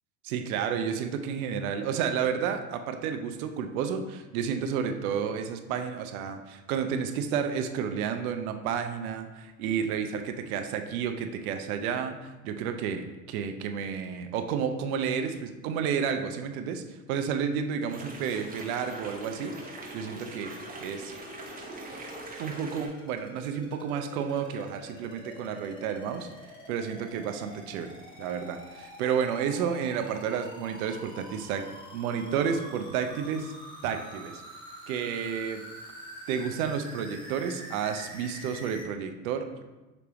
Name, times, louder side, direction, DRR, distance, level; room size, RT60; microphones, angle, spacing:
voice 1, 0.2-19.6 19.9-20.5 20.8-21.1 22.4-26.3 26.7-27.9 28.2-31.7 31.9-33.5 33.8-34.4 34.9-35.6 36.3-39.6, right 7 dB, 75° right, 6 dB, 0.5 m, -31 dB
sound 1, 17.9-22.9, right 2 dB, 20° right, 0.9 m, -43 dB
sound 2, 18.9-38.8, equal, 10° left, 0.9 m, -47 dB
5.0 x 3.3 x 2.8 m, 1.1 s
hypercardioid pair, 90°, 43 cm